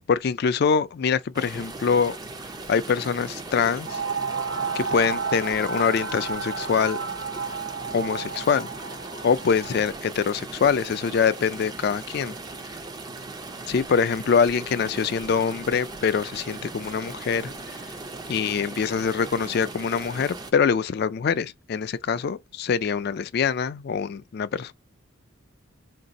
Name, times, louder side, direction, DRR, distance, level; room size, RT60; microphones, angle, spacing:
voice 1, 0.0-2.2 2.7-4.0 4.7-7.0 7.9-8.7 9.2-12.4 13.7-17.8 18.3-24.7, left 6 dB, 50° left, 0.3 m, -24 dB
sound 1, 1.3-20.5, right 3 dB, 20° right, 0.4 m, -38 dB
sound 2, 3.9-10.0, right 5 dB, 60° right, 0.8 m, -32 dB
3.8 x 2.6 x 4.0 m
head